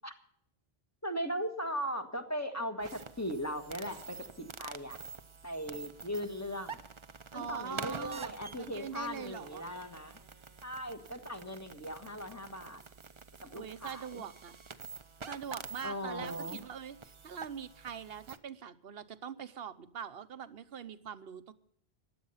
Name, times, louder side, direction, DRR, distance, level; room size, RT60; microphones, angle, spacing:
voice 1, 1.0-5.0 5.4-6.8 7.3-10.2 10.6-12.8 13.4-14.2 15.8-16.6, equal, 15° left, 6 dB, 1.5 m, -38 dB
sound 1, 2.8-18.4, right 5 dB, 30° right, 0.7 m, -48 dB
voice 2, 7.3-9.6 13.5-14.5 15.2-21.5, right 7 dB, 70° right, 14 dB, 1.1 m, -43 dB
16.0 x 11.0 x 5.6 m, 0.67 s
omnidirectional pair, 1.1 m